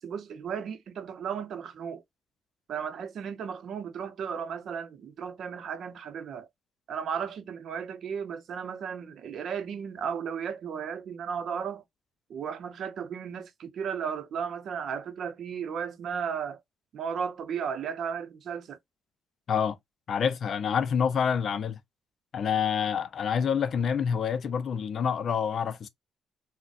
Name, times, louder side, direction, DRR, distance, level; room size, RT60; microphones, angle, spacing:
voice 1, 0.0-2.0 2.7-6.5 6.9-11.8 12.3-16.6 16.9-18.8, right 7 dB, 65° right, 0.6 m, -35 dB
voice 2, 20.1-21.8 22.3-25.9, left 7 dB, 55° left, 0.4 m, -27 dB
3.9 x 2.1 x 2.5 m
cardioid pair, 90°, 0 cm